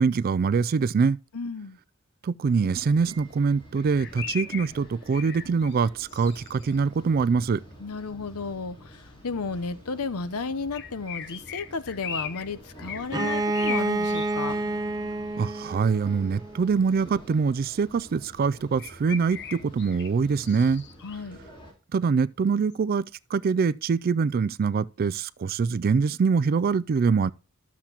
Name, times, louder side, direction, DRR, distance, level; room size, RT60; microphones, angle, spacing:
voice 1, 0.0-1.2 2.2-7.6 15.4-20.8 21.9-23.1 23.3-27.3, right 5 dB, 40° right, 0.3 m, -24 dB
voice 2, 1.3-1.8 7.8-14.6 21.0-21.4, left 4 dB, 85° left, 0.8 m, -33 dB
sound 1, 2.4-21.7, equal, 20° left, 3.2 m, -49 dB
sound 2, 3.8-6.8 10.7-12.5 12.8-14.3 17.1-17.2 18.8-21.2 22.7-22.8, left 8 dB, 55° left, 1.0 m, -38 dB
Bowed string instrument, 13.1-16.8, right 2 dB, 15° right, 0.7 m, -29 dB
12.0 x 7.2 x 2.9 m
head